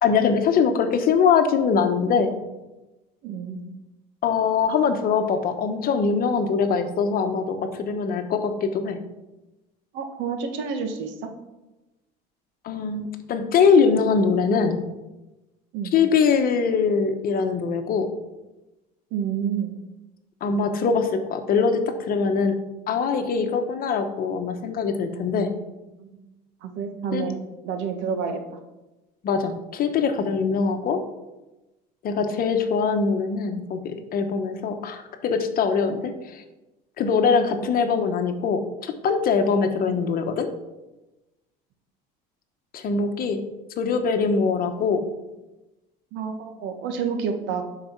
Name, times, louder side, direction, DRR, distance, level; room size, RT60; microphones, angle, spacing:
voice 1, 0.0-2.3 4.2-9.0 12.6-14.8 15.9-18.1 20.4-22.6 22.9-25.5 27.1-27.2 29.2-29.5 29.8-31.0 32.0-36.4 37.0-40.5 42.7-43.4 43.8-45.0, left 5 dB, 50° left, 7 dB, 1.1 m, -22 dB
voice 2, 3.2-3.6 9.9-11.3 15.7-15.9 19.1-19.7 26.0-26.1 26.6-27.4 27.6-28.6 37.6-37.7 46.1-47.6, right 6 dB, 70° right, 5 dB, 1.5 m, -29 dB
11.5 x 5.0 x 4.6 m, 1.0 s
cardioid pair, 115°, 20 cm